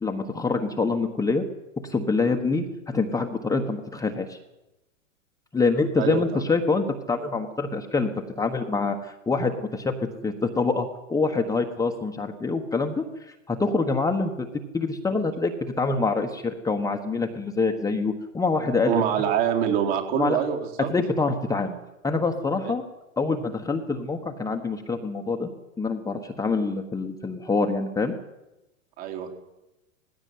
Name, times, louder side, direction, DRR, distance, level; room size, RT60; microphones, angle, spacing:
voice 1, 0.0-1.4 1.8-4.4 5.5-8.1 8.4-9.9 10.2-14.5 14.7-18.9 20.1-20.4 20.9-21.8 22.0-22.8 23.2-25.5 25.8-28.1, left 3 dB, 10° left, 3 dB, 1.2 m, -25 dB
voice 2, 6.0-6.4 18.9-20.9 22.6-22.7 29.0-29.3, right 9 dB, 50° right, 2 dB, 4.1 m, -25 dB
18.5 x 16.0 x 9.5 m, 0.98 s
hypercardioid pair, 130°, 41 cm